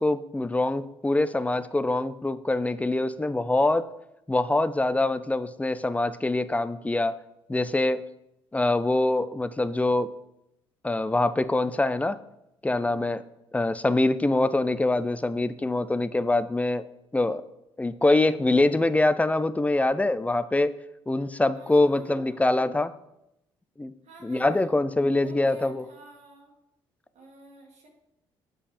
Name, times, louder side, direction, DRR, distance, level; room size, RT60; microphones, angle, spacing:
voice 1, 0.0-3.9 4.3-7.1 7.5-8.0 8.5-10.1 10.8-12.2 12.6-13.2 13.5-16.8 17.1-17.4 17.8-20.7 21.1-22.9 23.8-23.9 24.2-25.8, left 2 dB, 10° left, 15 dB, 0.5 m, -24 dB
voice 2, 21.5-22.5 24.0-24.8 25.1-26.5 27.1-27.9, right 2 dB, 60° right, 0 dB, 1.6 m, -50 dB
7.3 x 5.2 x 4.3 m, 0.85 s
hypercardioid pair, 50°, 13 cm